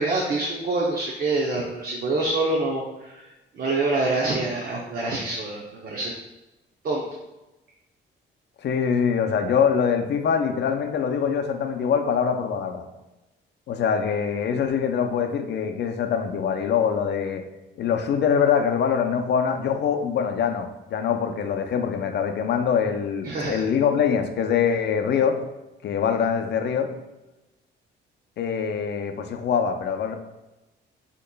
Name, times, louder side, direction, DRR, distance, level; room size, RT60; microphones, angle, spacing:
voice 1, 0.0-6.1 6.8-7.0 23.2-23.6, right 2 dB, 50° right, -2 dB, 0.7 m, -26 dB
voice 2, 8.6-12.8 13.7-17.4 17.8-25.4 25.8-26.9 28.4-30.1, left 7 dB, 60° left, 6 dB, 0.5 m, -24 dB
6.4 x 2.9 x 2.2 m, 1.0 s
cardioid pair, 90°, 20 cm